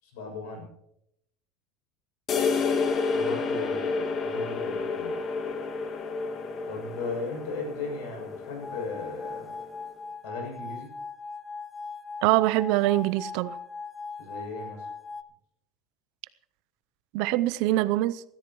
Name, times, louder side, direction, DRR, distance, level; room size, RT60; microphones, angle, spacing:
voice 1, 0.0-0.7 3.1-5.2 6.7-9.6 10.2-10.9 14.2-14.9, left 3 dB, 75° left, 2 dB, 7.2 m, -37 dB
sound 1, 2.3-9.8, left 4 dB, 30° left, 1.4 m, -30 dB
sound 2, 8.6-15.2, left 4 dB, 10° left, 0.6 m, -40 dB
voice 2, 12.2-13.6 17.1-18.2, right 16 dB, 60° right, 16 dB, 0.6 m, -24 dB
21.5 x 14.0 x 3.1 m, 0.76 s
cardioid pair, 160°, 0 cm